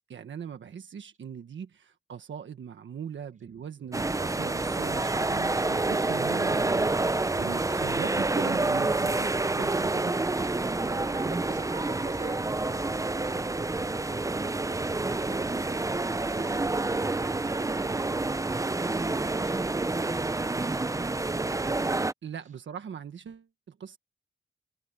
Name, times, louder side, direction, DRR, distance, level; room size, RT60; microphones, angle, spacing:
voice 1, 0.1-10.2 10.8-11.3 22.2-24.0, right 7 dB, 85° right, 1.5 m, -40 dB
voice 2, 3.8-4.1 10.7-17.7, right 3 dB, 40° right, 4.1 m, -47 dB
sound 1, 3.9-22.1, right 2 dB, 15° right, 0.6 m, -28 dB
cardioid pair, 65°, 19 cm